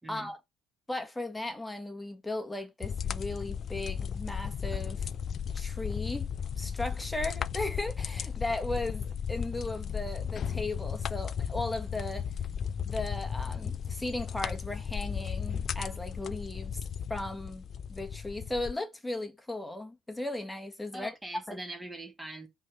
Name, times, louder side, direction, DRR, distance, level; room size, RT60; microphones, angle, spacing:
voice 1, 0.0-0.3 20.9-22.5, right 1 dB, 10° right, 2.4 m, -42 dB
voice 2, 0.9-5.1 5.5-6.3 6.6-12.3 12.8-16.8 17.1-21.1 21.5-21.6, left 2 dB, 10° left, 1.7 m, -36 dB
sound 1, 2.8-18.7, left 7 dB, 45° left, 0.4 m, -35 dB
5.2 x 3.6 x 5.5 m
hypercardioid pair, 60°, 0 cm